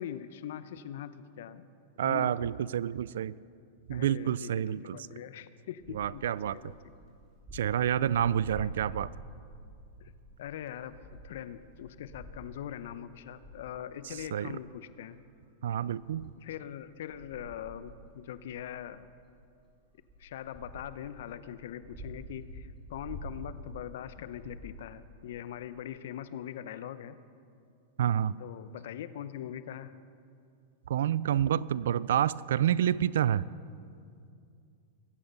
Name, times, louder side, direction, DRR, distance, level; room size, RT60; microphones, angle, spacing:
voice 1, 0.0-1.7 2.0-2.6 3.9-6.8 8.0-8.4 10.0-10.1 10.4-15.2 16.4-19.1 20.2-27.2 28.4-29.9, left 10 dB, 70° left, 13 dB, 0.7 m, -42 dB
voice 2, 2.0-3.3 3.9-5.0 5.9-6.6 7.5-9.1 14.3-14.5 15.6-16.3 28.0-28.3 30.9-33.5, right 10 dB, 75° right, 21 dB, 0.3 m, -28 dB
sound 1, 5.8-10.2 10.5-10.6 10.9-12.6 13.1-13.6 14.2-15.3 15.7-21.3 21.8-25.0, equal, 25° right, 3.8 m, -48 dB
22.0 x 8.7 x 5.4 m, 2.4 s
hypercardioid pair, 110°, 0 cm